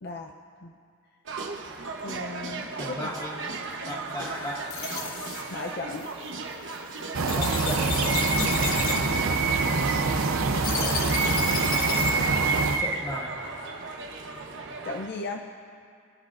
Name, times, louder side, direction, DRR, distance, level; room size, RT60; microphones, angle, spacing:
voice 1, 0.0-0.3 0.6-0.8 2.0-3.1 5.5-6.1 8.4-8.7 14.8-15.5, left 3 dB, 55° left, 2 dB, 0.6 m, -36 dB
sound 1, 1.3-15.1, right 4 dB, 60° right, 1.0 m, -32 dB
voice 2, 2.8-3.4 3.9-4.7 7.3-8.1 8.8-9.2 10.7-11.0 12.8-13.4 14.2-14.6, equal, 15° left, -3 dB, 1.8 m, -37 dB
sound 2, 4.2-12.3, left 5 dB, 70° left, 1.1 m, -34 dB
sound 3, 7.1-12.8, right 3 dB, 85° right, 0.7 m, -26 dB
27.0 x 10.0 x 2.5 m, 2.3 s
head